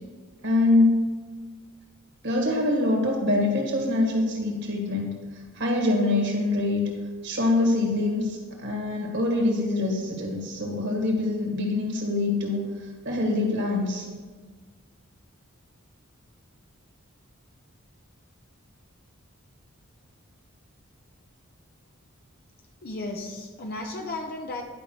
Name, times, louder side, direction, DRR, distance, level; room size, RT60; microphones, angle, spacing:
voice 1, 0.4-1.0 2.2-5.2 5.6-6.9 7.2-12.6 13.0-14.1, left 2 dB, 55° right, 0 dB, 2.0 m, -24 dB
voice 2, 22.8-24.6, left 2 dB, 45° left, 2 dB, 0.8 m, -34 dB
11.0 x 5.6 x 4.7 m, 1.5 s
head